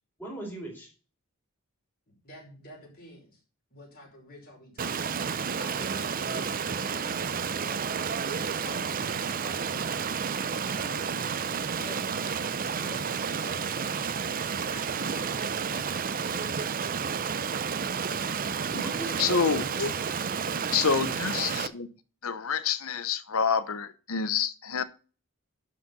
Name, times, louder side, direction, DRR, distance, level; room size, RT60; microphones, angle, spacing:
voice 1, 0.2-0.9 18.5-19.7 20.9-21.1, right 2 dB, 10° left, -3 dB, 4.3 m, -39 dB
voice 2, 2.2-3.4 3.7-7.9 8.6-9.8 10.7-11.4 11.7-12.5 12.8-14.0 14.5-16.5, left 1 dB, 45° left, -1 dB, 5.1 m, -48 dB
Stream, 4.8-21.7, right 6 dB, 40° right, 0.6 m, -31 dB
voice 3, 19.2-19.9 20.7-21.9 22.2-24.8, left 6 dB, 80° left, 13 dB, 1.0 m, -27 dB
11.5 x 5.1 x 5.3 m, 0.36 s
head